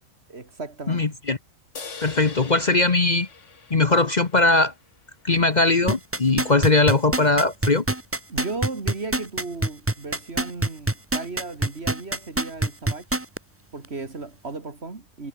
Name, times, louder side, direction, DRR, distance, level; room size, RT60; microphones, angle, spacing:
voice 1, 0.3-1.2 8.3-13.2 13.7-15.3, right 3 dB, 50° right, 2.7 m, -35 dB
voice 2, 0.9-1.4 2.0-3.3 3.7-4.7 5.2-7.8, left 3 dB, 35° left, 1.3 m, -20 dB
sound 1, 1.8-5.2, left 5 dB, 65° left, 2.3 m, -42 dB
sound 2, 5.9-13.4 13.8-13.9, right 2 dB, 10° right, 1.0 m, -24 dB
omnidirectional pair, 1.4 m